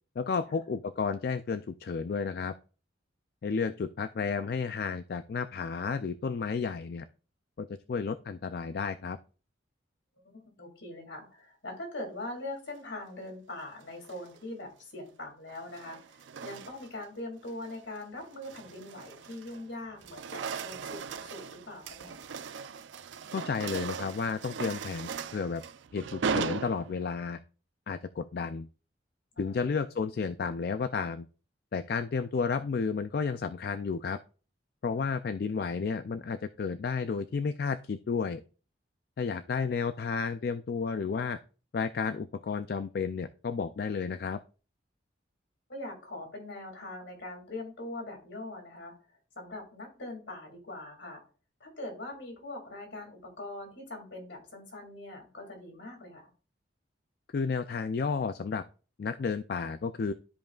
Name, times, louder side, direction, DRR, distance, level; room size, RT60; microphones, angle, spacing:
voice 1, 0.2-2.5 3.4-7.1 7.6-9.2 23.3-25.6 25.9-27.4 27.9-28.7 29.4-31.3 31.7-34.2 34.8-38.4 39.2-41.4 41.7-44.4 57.3-58.6 59.0-60.1, left 5 dB, 50° left, 11 dB, 0.3 m, -32 dB
voice 2, 10.2-22.2 29.4-29.6 45.7-48.9 49.4-51.2 51.6-56.3, left 2 dB, 70° left, 3 dB, 2.4 m, -42 dB
sound 1, 13.9-14.4 15.5-17.0 17.5-17.8 18.2-19.7 19.9-27.3, right 5 dB, 75° right, 0.4 m, -38 dB
13.0 x 5.2 x 2.4 m, 0.37 s
head